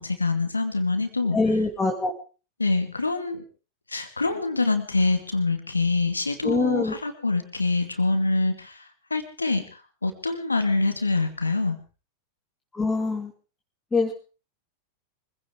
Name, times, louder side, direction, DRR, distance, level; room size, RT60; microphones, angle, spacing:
voice 1, 0.0-1.4 2.6-3.4 3.9-8.8 9.1-9.7 10.0-11.8, left 3 dB, 80° left, 8 dB, 2.3 m, -25 dB
voice 2, 1.3-2.1 6.4-6.9 12.7-13.3 13.9-14.1, left 3 dB, 15° left, 1 dB, 2.4 m, -24 dB
24.5 x 16.0 x 3.7 m, 0.35 s
figure-of-eight pair, 90°, 0 cm